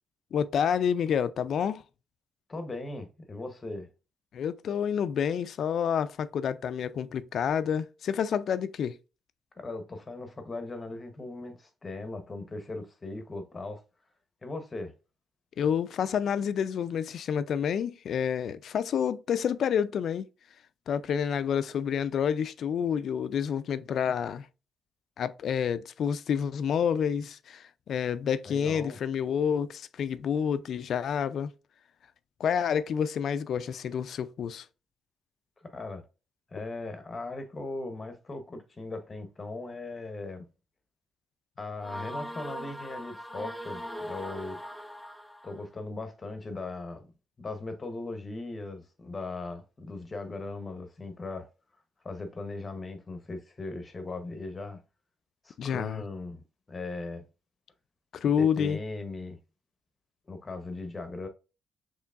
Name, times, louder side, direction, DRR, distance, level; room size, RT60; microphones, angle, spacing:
voice 1, 0.3-1.8 4.3-9.0 15.6-20.3 20.9-24.5 25.2-31.5 32.4-34.7 55.6-56.0 58.2-58.8, left 8 dB, 65° left, 0.3 m, -28 dB
voice 2, 2.5-3.9 9.6-13.8 14.4-14.9 28.5-29.0 35.6-36.0 36.5-40.4 41.6-44.6 45.4-47.1 47.4-51.5 52.0-54.8 55.4-57.2 58.4-59.4 60.3-61.3, left 2 dB, 30° left, 0.8 m, -38 dB
sound 1, 41.8-45.6, equal, ahead, 0.5 m, -40 dB
4.5 x 3.0 x 2.4 m
cardioid pair, 90°, 0 cm